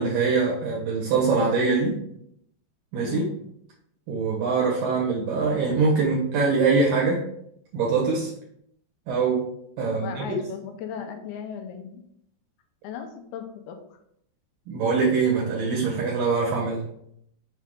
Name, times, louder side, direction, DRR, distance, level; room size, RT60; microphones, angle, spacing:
voice 1, 0.0-2.0 2.9-3.2 4.1-7.2 7.7-8.3 9.1-9.4 9.8-10.3 14.7-16.8, right 4 dB, 70° right, -4 dB, 2.6 m, -23 dB
voice 2, 3.0-3.4 9.8-12.0 12.8-14.0, left 7 dB, 80° left, 5 dB, 2.6 m, -37 dB
6.6 x 4.7 x 3.7 m, 0.72 s
omnidirectional pair, 4.6 m